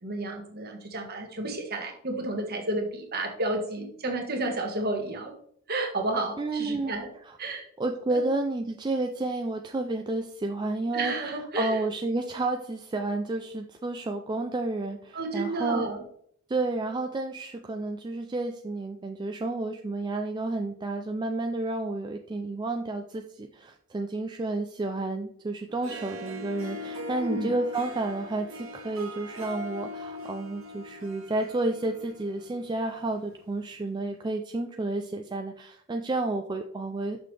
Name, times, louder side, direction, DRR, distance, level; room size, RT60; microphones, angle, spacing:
voice 1, 0.0-5.3 5.7-7.1 7.4-7.6 8.1-8.2 10.9-11.8 15.1-16.0 27.2-27.5, right 2 dB, 45° right, 3 dB, 1.4 m, -31 dB
voice 2, 6.4-7.0 7.2-7.4 7.8-11.1 11.6-15.9 16.5-37.2, right 2 dB, 20° right, 4 dB, 0.3 m, -31 dB
Harp, 25.7-33.1, left 1 dB, 75° right, 1.2 m, -41 dB
6.6 x 5.9 x 3.3 m, 0.63 s
head